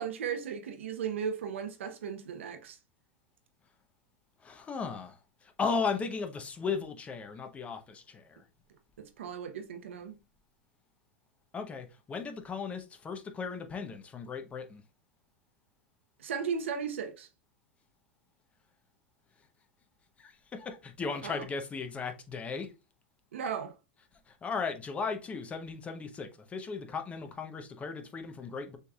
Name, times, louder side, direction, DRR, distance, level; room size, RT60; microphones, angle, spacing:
voice 1, 0.0-2.8 9.0-10.2 16.2-17.3 21.2-21.5 23.3-23.7, right 7 dB, 85° right, 0.8 m, -36 dB
voice 2, 4.4-8.4 11.5-14.8 20.2-22.7 24.3-28.8, left 5 dB, 20° left, 0.8 m, -36 dB
6.7 x 3.3 x 2.4 m
hypercardioid pair, 125°, 7 cm